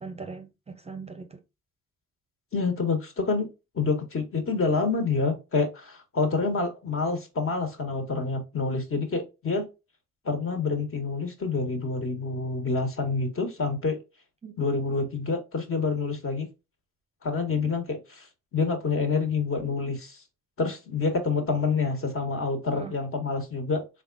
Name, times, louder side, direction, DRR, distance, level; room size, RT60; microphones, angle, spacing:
voice 1, 0.0-1.4 14.4-14.7 17.6-17.7 22.7-23.0, right 4 dB, 20° right, 0.6 m, -41 dB
voice 2, 2.5-3.5 3.7-9.7 10.2-14.0 14.6-16.5 17.2-18.3 18.5-20.2 20.6-23.8, left 4 dB, 45° left, 1.6 m, -27 dB
4.0 x 3.7 x 2.6 m
cardioid pair, 90°, 30 cm